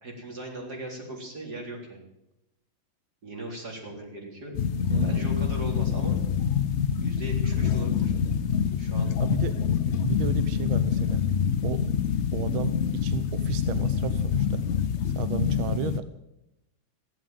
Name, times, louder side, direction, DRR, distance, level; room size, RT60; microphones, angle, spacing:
voice 1, 0.0-2.0 3.2-4.5 5.0-6.2 7.0-8.1 8.8-9.1, right 1 dB, 50° right, 0 dB, 4.4 m, -38 dB
sound 1, 4.5-16.0, left 7 dB, 80° left, 0.6 m, -26 dB
voice 2, 4.9-5.3 9.2-9.5 10.0-11.2 11.6-11.8 12.3-14.6 15.0-16.1, right 10 dB, 80° right, 12 dB, 1.6 m, -33 dB
15.5 x 11.5 x 7.8 m, 0.89 s
omnidirectional pair, 2.3 m